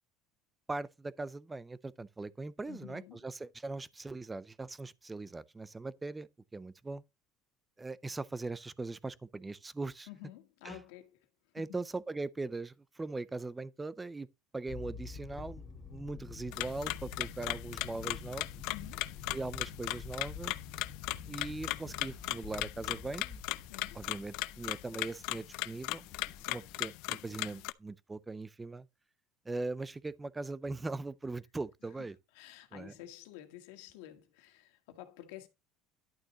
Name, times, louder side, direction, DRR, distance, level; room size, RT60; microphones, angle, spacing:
voice 1, 0.7-7.0 7.8-10.1 10.6-10.8 11.5-14.3 14.5-18.5 19.3-20.6 21.3-23.4 23.9-26.1 26.4-28.9 29.5-32.2 32.7-32.9, right 3 dB, 10° right, 0.5 m, -40 dB
voice 2, 2.7-3.2 10.1-11.2 11.6-11.8 18.7-19.1 23.7-24.0 26.4-26.6 32.3-35.5, left 13 dB, 90° left, 1.8 m, -50 dB
sound 1, 14.7-26.9, left 5 dB, 35° left, 2.6 m, -48 dB
sound 2, 16.5-27.7, left 19 dB, 65° left, 0.4 m, -38 dB
11.5 x 6.4 x 2.9 m
cardioid pair, 165°, 0 cm